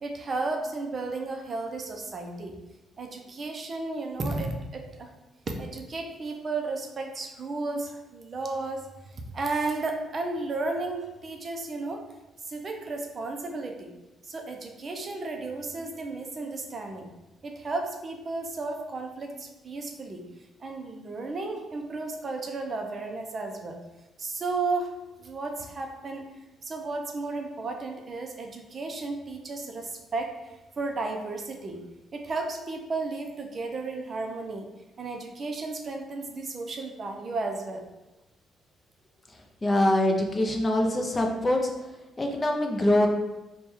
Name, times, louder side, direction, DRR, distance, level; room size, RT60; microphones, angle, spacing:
voice 1, 0.0-2.6 3.0-5.1 5.5-8.9 9.3-12.0 12.4-13.9 14.2-17.1 17.4-20.2 20.6-23.8 24.2-26.2 26.6-31.8 32.1-34.7 35.0-37.9, right 3 dB, 30° right, 3 dB, 0.5 m, -33 dB
voice 2, 39.6-41.6 42.2-43.1, left 1 dB, 20° left, 1 dB, 0.5 m, -23 dB
3.4 x 2.2 x 4.3 m, 1.0 s
cardioid pair, 155°, 0 cm